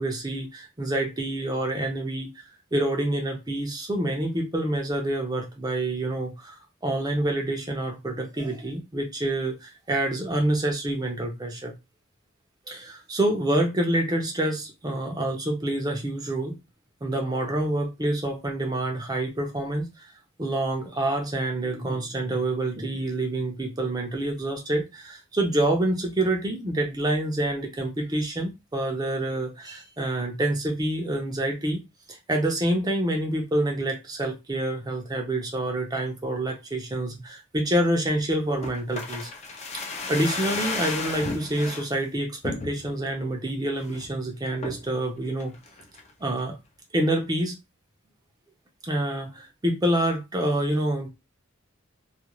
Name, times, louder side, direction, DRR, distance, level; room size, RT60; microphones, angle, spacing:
voice 1, 0.0-2.3 2.7-6.5 6.8-11.7 12.7-16.6 17.0-20.1 20.4-31.8 32.1-39.3 39.7-45.5 46.2-46.6 46.9-47.6 48.8-51.1, right 1 dB, 20° right, 0.5 m, -27 dB
sound 1, 38.6-41.9 42.4-43.1 43.5-43.6 43.8-44.1 44.6-44.9 45.4-46.1 46.4-46.5, left 3 dB, 35° left, 0.5 m, -33 dB
2.4 x 2.3 x 3.0 m
head